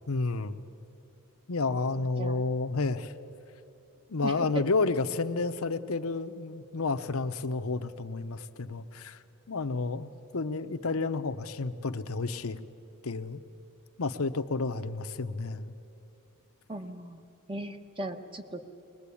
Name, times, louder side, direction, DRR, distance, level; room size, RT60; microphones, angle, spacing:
voice 1, 0.1-0.6 1.5-3.1 4.1-9.2 9.5-12.6 13.0-13.4 14.0-15.7, left 3 dB, 70° left, 9 dB, 0.8 m, -31 dB
voice 2, 2.0-2.4 4.2-4.5 16.7-17.2 17.5-18.6, right 1 dB, 25° right, 6 dB, 1.2 m, -38 dB
21.5 x 20.5 x 8.5 m, 2.7 s
head